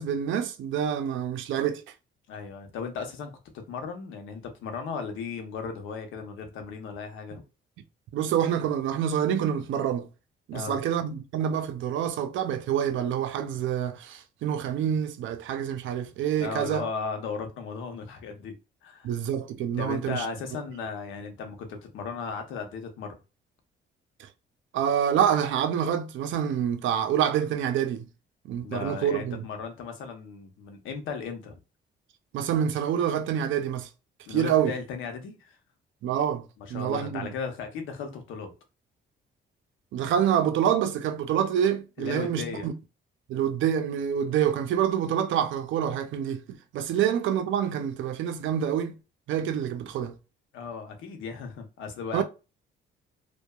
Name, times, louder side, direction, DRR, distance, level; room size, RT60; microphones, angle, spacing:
voice 1, 0.0-1.8 8.1-10.1 10.5-16.8 19.0-20.3 24.2-24.3 24.7-28.1 28.4-29.5 32.3-33.9 34.3-34.7 36.0-36.4 36.7-37.3 39.9-42.7 43.3-49.0 49.3-50.1 52.1-52.2, right 9 dB, 75° right, 0.5 m, -27 dB
voice 2, 2.3-3.3 3.7-7.4 10.5-10.8 16.4-18.5 18.8-19.1 19.8-23.2 28.6-31.6 34.3-35.6 36.6-38.5 42.0-42.7 50.5-52.2, left 5 dB, 85° left, 0.7 m, -36 dB
2.7 x 2.2 x 2.2 m
cardioid pair, 90°, 20 cm